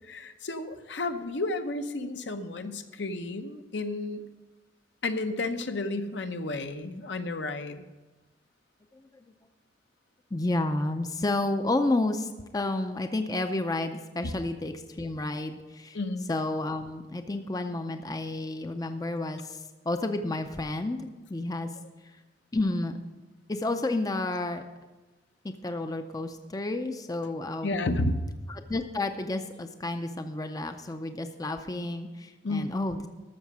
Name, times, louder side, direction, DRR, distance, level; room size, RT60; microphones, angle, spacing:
voice 1, 0.1-4.2 5.0-7.8 15.9-16.3 27.6-28.2 32.4-32.7, left 2 dB, 70° left, 8 dB, 0.8 m, -32 dB
voice 2, 10.3-16.0 16.3-19.6 19.9-21.0 21.3-21.7 22.5-23.0 23.5-24.6 25.4-27.9 28.5-33.1, left 2 dB, 20° left, 7 dB, 0.5 m, -31 dB
13.0 x 6.8 x 6.1 m, 1.1 s
head